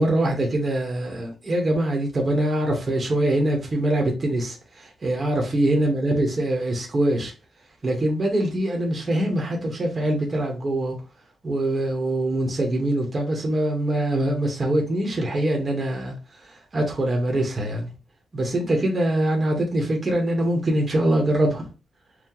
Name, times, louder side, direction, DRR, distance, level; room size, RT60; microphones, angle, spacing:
voice 1, 0.0-7.3 7.8-10.9 11.4-16.1 16.7-17.9 18.3-21.7, right 1 dB, 30° right, 1 dB, 1.1 m, -23 dB
4.6 x 2.2 x 3.7 m, 0.32 s
wide cardioid pair, 140°, 0 cm